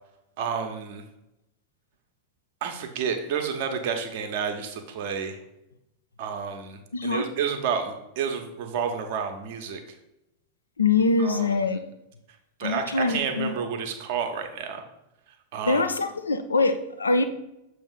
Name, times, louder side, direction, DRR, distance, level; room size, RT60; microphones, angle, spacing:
voice 1, 0.4-1.0 2.6-5.4 6.2-9.8 11.2-11.6 12.6-14.8 15.5-15.8, right 6 dB, 50° right, 4 dB, 0.9 m, -30 dB
voice 2, 6.9-7.2 10.8-11.8 12.6-13.5 15.6-17.2, left 3 dB, 75° left, 9 dB, 0.5 m, -23 dB
7.0 x 2.9 x 5.7 m, 0.88 s
figure-of-eight pair, 90°, 0 cm